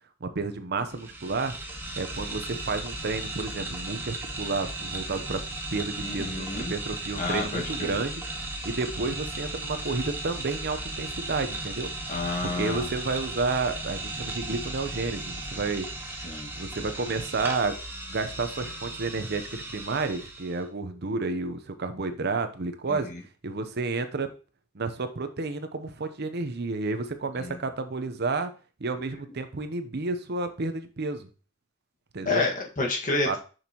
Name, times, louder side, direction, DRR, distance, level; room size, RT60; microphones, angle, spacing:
voice 1, 0.2-1.6 2.0-5.4 5.7-11.9 12.4-16.2 16.6-17.8 18.1-23.1 23.4-24.3 24.7-28.5 28.8-31.3 32.1-32.4 33.3-33.4, right 3 dB, 55° right, 9 dB, 0.8 m, -31 dB
sound 1, 0.9-20.6, right 2 dB, 10° right, 1.1 m, -36 dB
voice 2, 6.0-6.7 7.2-7.9 12.1-12.9 16.2-16.5 22.9-23.2 27.4-27.6 32.3-33.4, left 3 dB, 40° left, 0 dB, 1.7 m, -29 dB
6.6 x 6.2 x 3.0 m, 0.35 s
head